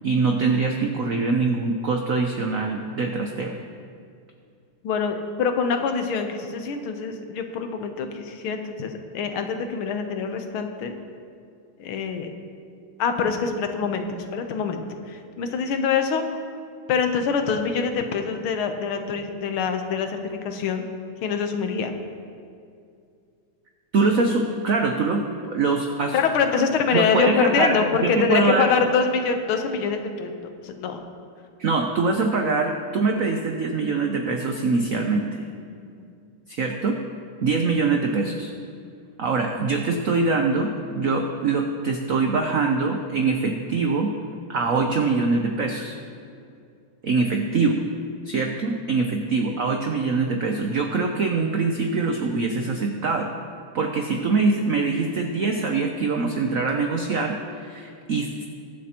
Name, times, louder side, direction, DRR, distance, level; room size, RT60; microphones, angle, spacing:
voice 1, 0.0-3.5 23.9-26.2 26.9-28.7 31.6-35.4 36.5-37.0 37.4-38.5 39.2-44.1 44.5-46.0 47.0-47.8 48.2-53.3 53.7-58.5, right 4 dB, 80° right, 3 dB, 0.7 m, -23 dB
voice 2, 4.8-10.9 11.8-12.3 13.0-16.2 16.9-20.8 21.2-21.9 26.1-30.3 30.6-31.0, left 6 dB, 80° left, 6 dB, 1.7 m, -25 dB
22.5 x 7.6 x 2.9 m, 2.4 s
omnidirectional pair, 2.3 m